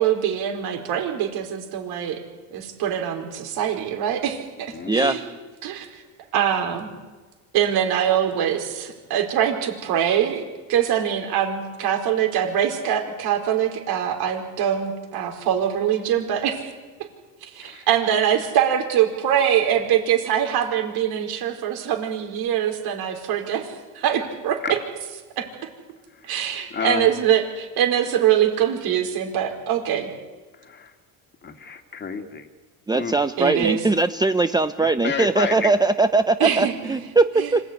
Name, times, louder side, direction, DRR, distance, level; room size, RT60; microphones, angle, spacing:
voice 1, 0.0-2.2 2.5-5.2 5.6-6.0 6.3-6.9 7.5-16.7 17.4-24.8 25.4-25.5 26.2-30.1 33.4-33.8 36.4-37.0 37.4-37.5, right 9 dB, 65° right, 4 dB, 4.8 m, -23 dB
voice 2, 4.7-5.2 17.6-17.9 24.6-24.8 26.1-26.3 26.7-27.1 30.5-31.0 31.4-32.5 32.9-33.2 34.8-35.7, left 6 dB, 25° left, 5 dB, 2.4 m, -30 dB
voice 3, 32.9-37.2 37.5-37.6, right 3 dB, 10° right, 9 dB, 0.8 m, -20 dB
26.0 x 16.0 x 9.7 m, 1.3 s
cardioid pair, 115°, 40 cm